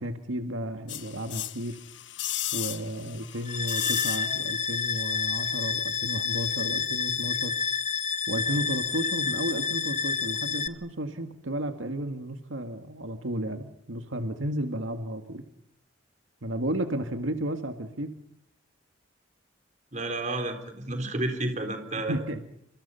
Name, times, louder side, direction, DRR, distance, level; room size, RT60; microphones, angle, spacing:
voice 1, 0.0-1.8 2.5-7.5 8.3-15.4 16.4-18.2 22.1-22.4, right 1 dB, 85° right, 7 dB, 1.8 m, -33 dB
sound 1, 0.9-4.7 5.0-5.1, left 13 dB, 65° left, 1.2 m, -35 dB
sound 2, 3.5-10.7, left 6 dB, 35° left, 1.1 m, -29 dB
voice 2, 19.9-22.2, right 2 dB, 40° right, 6 dB, 3.8 m, -31 dB
29.0 x 26.0 x 5.6 m, 0.70 s
head